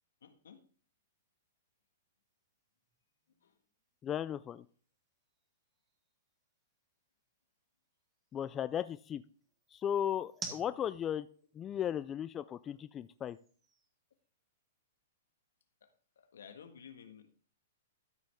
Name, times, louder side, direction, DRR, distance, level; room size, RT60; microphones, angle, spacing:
voice 1, 0.2-0.6 3.4-3.5 15.8-17.3, left 7 dB, 90° left, 7 dB, 1.6 m, -54 dB
sound 1, 0.6-14.8, right 4 dB, 15° right, 1.5 m, -55 dB
voice 2, 4.0-4.7 8.3-9.2 9.7-11.3 11.5-13.4, left 9 dB, 20° left, 13 dB, 0.3 m, -36 dB
13.0 x 5.3 x 3.6 m, 0.42 s
hypercardioid pair, 150°, 0 cm